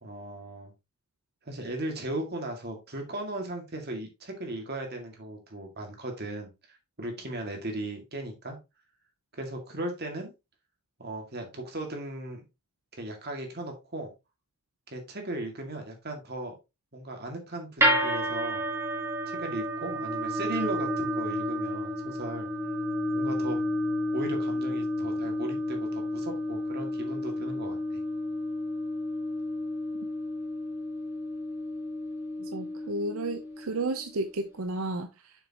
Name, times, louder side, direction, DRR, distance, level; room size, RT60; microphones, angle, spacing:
voice 1, 0.0-0.7 1.4-8.6 9.3-10.3 11.0-12.4 12.9-14.1 14.9-16.5 16.9-18.6 19.3-22.5 23.1-23.7 24.1-28.0, right 1 dB, 45° right, 2.1 m, -37 dB
sound 1, 17.8-34.0, equal, 10° right, 1.6 m, -31 dB
voice 2, 32.4-35.3, right 2 dB, 70° right, 0.7 m, -32 dB
7.1 x 6.7 x 2.9 m
head